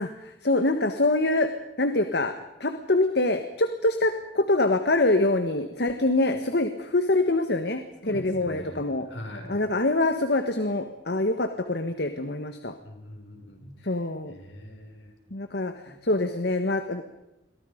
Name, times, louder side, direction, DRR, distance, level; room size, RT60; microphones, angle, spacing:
voice 1, 0.0-1.5 1.8-2.3 2.6-7.8 8.1-9.1 9.5-12.7 13.8-14.3 15.3-17.0, left 2 dB, 60° left, 8 dB, 1.5 m, -25 dB
voice 2, 8.0-9.6 12.8-13.9 14.3-15.1 15.9-16.0, left 1 dB, 85° left, 3 dB, 5.9 m, -42 dB
29.0 x 23.5 x 5.3 m, 0.92 s
head